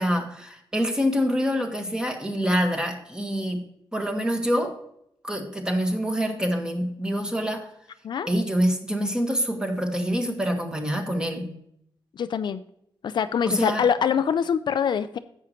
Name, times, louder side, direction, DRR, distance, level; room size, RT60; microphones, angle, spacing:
voice 1, 0.0-3.6 3.9-4.8 5.2-7.7 8.3-11.5 13.5-13.9, equal, 10° right, 3 dB, 1.5 m, -26 dB
voice 2, 12.2-12.6 13.0-15.2, left 7 dB, 60° left, 11 dB, 0.4 m, -24 dB
10.5 x 8.0 x 3.0 m, 0.73 s
wide cardioid pair, 125°, 9 cm